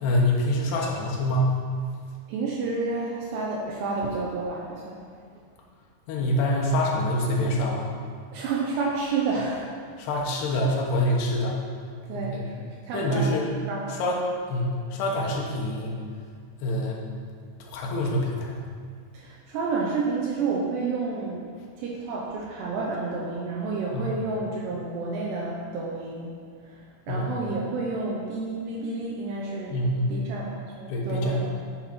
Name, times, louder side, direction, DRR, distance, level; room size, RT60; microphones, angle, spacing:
voice 1, 0.0-1.5 6.1-7.9 10.0-11.6 12.1-12.5 12.9-13.5 13.9-14.2 14.5-16.0 16.6-17.0 17.6-18.6 23.9-24.1 27.1-27.3 29.7-30.2 30.9-31.4, left 1 dB, 75° left, -2 dB, 3.1 m, -25 dB
voice 2, 2.3-5.0 8.3-9.8 12.1-12.5 12.8-13.4 13.7-14.0 19.1-21.5 21.8-26.3 27.1-29.8 30.1-31.6, right 3 dB, 80° right, -4 dB, 2.9 m, -30 dB
11.0 x 5.8 x 4.4 m, 2.1 s
omnidirectional pair, 5.1 m